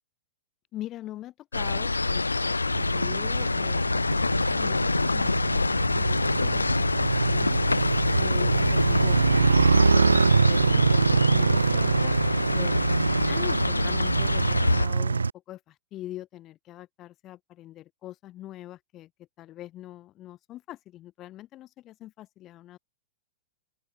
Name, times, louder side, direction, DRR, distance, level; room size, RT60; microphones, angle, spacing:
voice 1, 0.7-7.6 8.1-10.1 10.4-12.1 12.5-12.9 13.2-19.1 19.4-22.8, left 14 dB, 30° left, 3.4 m, -43 dB
sound 1, 1.5-14.9, left 3 dB, 80° left, 0.8 m, -26 dB
Motorcycle, 2.7-15.3, right 4 dB, 75° right, 0.4 m, -25 dB
open air
figure-of-eight pair, 100°, 0 cm